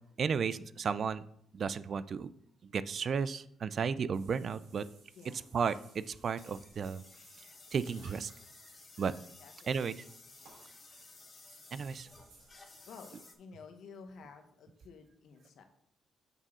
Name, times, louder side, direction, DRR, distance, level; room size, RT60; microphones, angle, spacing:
voice 1, 0.2-1.2 1.5-2.3 2.6-4.9 5.5-7.0 7.7-8.3 9.0-9.1 9.7-10.0 11.7-12.1, right 6 dB, 50° right, 16 dB, 0.3 m, -33 dB
Water / Bathtub (filling or washing), 4.1-13.3, right 3 dB, 85° right, 3.2 m, -61 dB
voice 2, 5.1-5.6 9.0-9.7 12.9-15.6, left 5 dB, 70° left, 6 dB, 0.9 m, -53 dB
sound 1, 6.4-13.3, left 4 dB, 35° left, 0.9 m, -56 dB
6.6 x 3.6 x 6.2 m, 0.70 s
cardioid pair, 90°, 0 cm